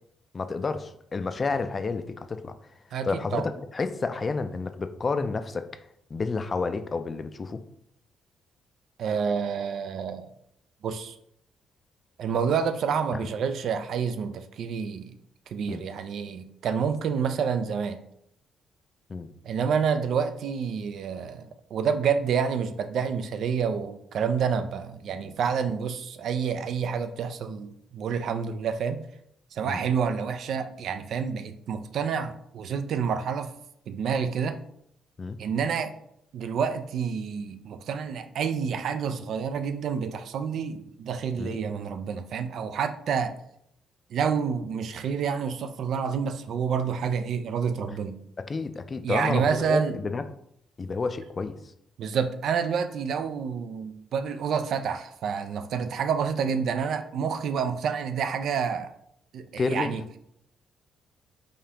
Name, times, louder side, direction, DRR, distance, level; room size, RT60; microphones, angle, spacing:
voice 1, 0.3-2.5 3.0-5.7 6.1-7.6 13.2-13.3 15.7-15.8 19.1-19.3 29.6-29.8 35.2-35.4 41.4-41.6 48.4-50.2 50.8-51.5 59.6-59.9, left 4 dB, 35° left, 10 dB, 0.3 m, -30 dB
voice 2, 2.9-3.5 9.0-10.3 10.8-11.1 12.2-15.1 15.5-18.0 19.4-29.0 29.5-33.5 33.9-34.6 35.4-35.9 36.3-43.3 44.1-48.2 49.0-50.0 52.0-58.9 59.3-60.0, right 6 dB, 70° right, 10 dB, 0.3 m, -28 dB
5.0 x 2.4 x 2.8 m, 0.73 s
cardioid pair, 90°, 0 cm